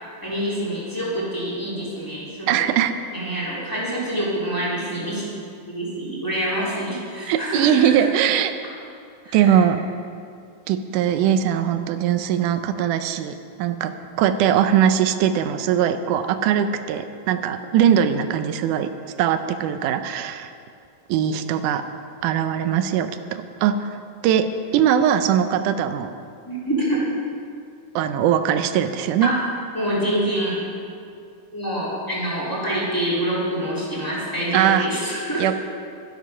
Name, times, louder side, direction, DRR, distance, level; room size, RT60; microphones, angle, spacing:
voice 1, 0.2-2.7 3.1-5.2 5.7-7.9 9.2-9.6 26.4-27.0 29.2-29.4 29.7-30.6 31.5-35.5, right 1 dB, 5° left, -7 dB, 2.6 m, -26 dB
voice 2, 2.5-3.0 7.3-8.5 9.3-9.8 10.7-13.9 14.2-18.9 19.2-20.5 21.1-21.8 22.2-24.0 24.2-24.5 24.7-26.1 28.0-29.3 34.5-34.9 35.4-35.6, right 9 dB, 80° right, 10 dB, 2.0 m, -20 dB
12.0 x 11.5 x 5.6 m, 2.4 s
omnidirectional pair, 4.1 m